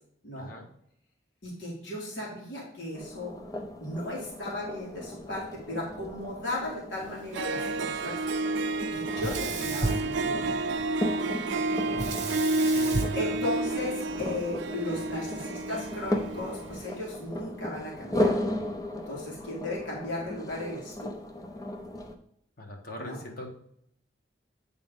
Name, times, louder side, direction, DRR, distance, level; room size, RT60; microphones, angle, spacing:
voice 1, 0.4-0.7 12.7-13.4 22.6-23.5, left 1 dB, 55° left, 2 dB, 1.3 m, -41 dB
voice 2, 1.4-3.3 3.8-8.2 8.9-10.8 11.9-12.1 13.2-18.4 19.1-21.1 23.0-23.2, left 1 dB, 85° left, -5 dB, 2.1 m, -36 dB
sound 1, 2.9-22.2, left 1 dB, 20° left, 0.6 m, -36 dB
Harp, 7.0-7.1 7.3-16.9, right 2 dB, 90° right, 0.4 m, -30 dB
Sink (filling or washing), 9.2-10.8 12.0-14.2, right 3 dB, 45° right, 1.0 m, -33 dB
8.4 x 3.6 x 3.7 m, 0.71 s
head